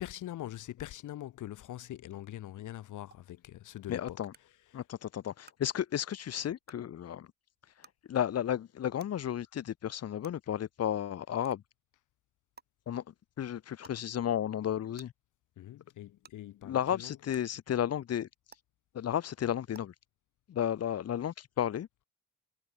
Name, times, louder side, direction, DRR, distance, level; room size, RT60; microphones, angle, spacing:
voice 1, 0.0-4.8 15.6-17.2, left 13 dB, 80° left, 7.5 m, -43 dB
sound 1, 3.1-3.2 4.3-4.4 5.4-5.5 6.6-6.7 7.8-7.9 9.0-9.1 10.2-10.3 11.4-11.6 12.6-12.7 13.8-14.0 15.0-15.1 16.2-16.3 17.3-17.4 18.5-18.6 19.7-19.8, right 5 dB, 30° right, 5.1 m, -54 dB
voice 2, 3.9-4.3 4.7-7.3 8.1-11.6 12.9-13.0 13.4-15.1 16.6-18.3 18.9-19.9 20.5-21.9, left 10 dB, 55° left, 1.2 m, -33 dB
cardioid pair, 90°, 30 cm